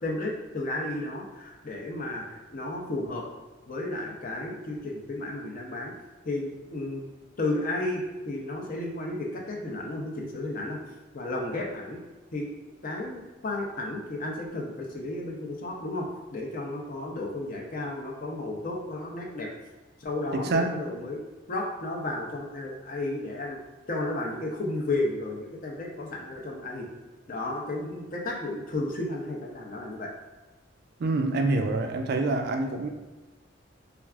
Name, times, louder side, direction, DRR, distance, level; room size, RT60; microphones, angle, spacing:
voice 1, 0.0-3.2 3.7-5.9 6.2-7.1 7.4-10.8 11.1-12.0 12.3-12.5 12.8-19.5 20.0-21.2 21.5-23.6 23.9-26.9 27.3-30.1, left 2 dB, 45° left, 0 dB, 0.6 m, -33 dB
voice 2, 20.3-20.8 31.0-32.9, right 2 dB, 55° right, 5 dB, 0.3 m, -26 dB
4.6 x 2.3 x 2.3 m, 1.2 s
head